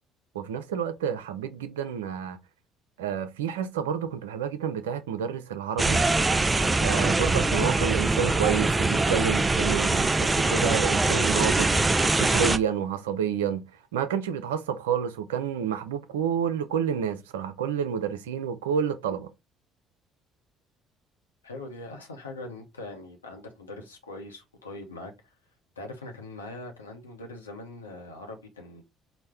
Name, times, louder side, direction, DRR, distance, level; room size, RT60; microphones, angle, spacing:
voice 1, 0.3-2.4 3.0-6.0 6.8-11.8 12.2-13.6 13.9-19.3, right 8 dB, 80° right, 0.4 m, -29 dB
sound 1, 5.8-12.6, right 2 dB, 20° right, 0.4 m, -23 dB
voice 2, 21.4-25.3 25.8-28.8, left 2 dB, 90° left, 0.7 m, -42 dB
4.2 x 2.1 x 3.4 m
hypercardioid pair, 55°, 0 cm